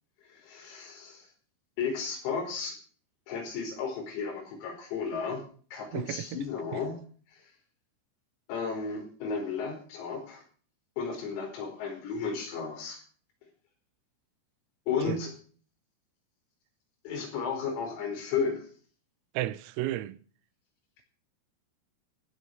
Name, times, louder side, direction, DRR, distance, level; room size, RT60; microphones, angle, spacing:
voice 1, 0.3-1.3 1.8-2.7 3.3-5.4 5.7-7.0 7.3-7.5 8.5-10.4 11.0-13.0 14.9-15.4 17.1-18.7, left 5 dB, 90° left, 7.7 m, -33 dB
voice 2, 5.9-6.4 15.1-15.2 19.4-20.2, right 15 dB, 85° right, 3.5 m, -32 dB
15.5 x 8.6 x 7.9 m
omnidirectional pair, 6.0 m